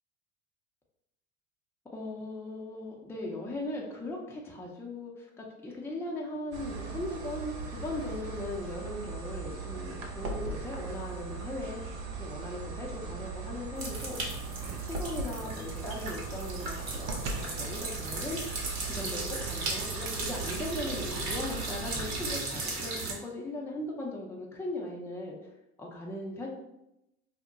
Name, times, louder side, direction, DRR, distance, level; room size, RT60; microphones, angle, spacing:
voice 1, 1.8-11.8 12.2-14.5 14.8-18.4 18.9-25.5 25.8-26.5, left 2 dB, 5° left, -2 dB, 0.5 m, -38 dB
sound 1, 6.5-22.4, right 4 dB, 75° right, 0.6 m, -39 dB
sound 2, 13.8-23.1, right 3 dB, 50° right, 1.0 m, -37 dB
2.3 x 2.1 x 3.8 m, 0.88 s
hypercardioid pair, 75°, 34 cm